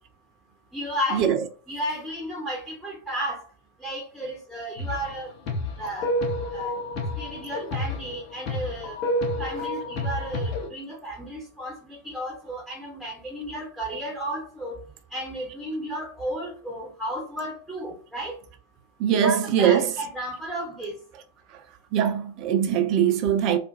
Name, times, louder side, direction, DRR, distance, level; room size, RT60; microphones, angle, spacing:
voice 1, 0.7-1.4 1.7-3.4 3.8-5.3 5.8-6.1 6.5-6.8 7.2-9.0 9.4-14.8 15.1-18.4 19.2-21.0, equal, ahead, 0.6 m, -33 dB
sound 1, 4.8-5.2 5.5-10.7, left 1 dB, 40° left, 0.7 m, -29 dB
voice 2, 19.0-19.9 21.9-23.6, right 9 dB, 40° right, 0.4 m, -21 dB
2.4 x 2.1 x 2.5 m
figure-of-eight pair, 90°, 0 cm